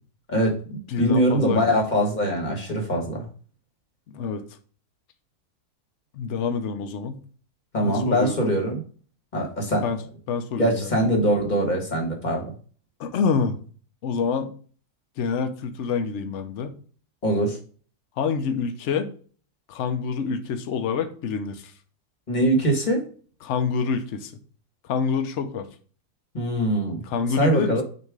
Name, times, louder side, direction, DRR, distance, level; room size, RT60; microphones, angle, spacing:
voice 1, 0.3-3.3 7.7-8.8 9.3-9.8 10.6-12.4 17.2-17.6 22.3-23.0 26.3-27.0 27.4-27.8, right 1 dB, 30° left, 2 dB, 1.5 m, -23 dB
voice 2, 0.9-1.8 4.1-4.4 6.1-7.2 7.8-8.5 9.8-10.0 10.3-10.9 13.0-13.6 14.0-14.5 15.2-16.7 18.2-19.1 19.7-21.7 23.4-24.3 24.8-25.7 27.0-27.8, left 5 dB, 55° left, 7 dB, 0.9 m, -27 dB
6.8 x 3.0 x 4.7 m, 0.43 s
omnidirectional pair, 1.7 m